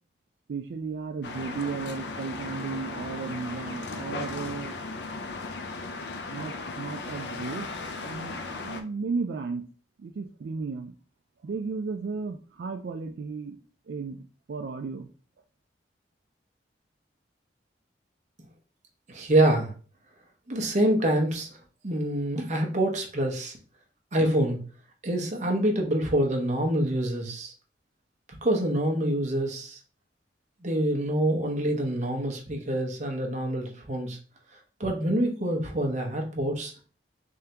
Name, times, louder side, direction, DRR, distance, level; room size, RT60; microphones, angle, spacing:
voice 1, 0.5-4.7 6.3-7.7 8.0-9.7 10.0-10.9 11.4-13.6 13.9-14.2 14.5-15.1, right 4 dB, 65° right, 4 dB, 0.3 m, -34 dB
sound 1, 1.2-8.8, left 3 dB, 65° left, 0.5 m, -36 dB
voice 2, 19.1-19.7 20.5-21.6 21.8-23.6 24.1-24.6 25.0-27.5 28.4-29.8 30.6-34.2 34.8-36.7, right 1 dB, 40° right, 2 dB, 0.8 m, -26 dB
3.6 x 3.3 x 2.9 m, 0.39 s
head